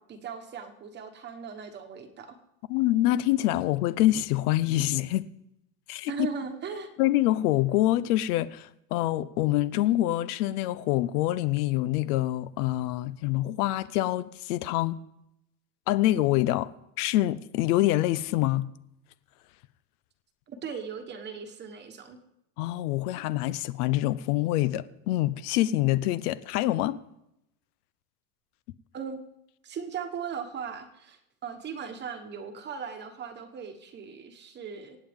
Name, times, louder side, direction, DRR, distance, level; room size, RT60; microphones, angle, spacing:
voice 1, 0.1-2.4 6.1-6.9 20.5-22.2 28.9-29.2 29.6-35.0, right 6 dB, 20° right, 1.2 m, -38 dB
voice 2, 2.7-5.2 5.9-6.1 7.0-15.0 15.9-16.7 17.0-18.7 22.6-27.0, left 15 dB, 75° left, 0.7 m, -26 dB
24.5 x 8.9 x 3.6 m
supercardioid pair, 165°, 46 cm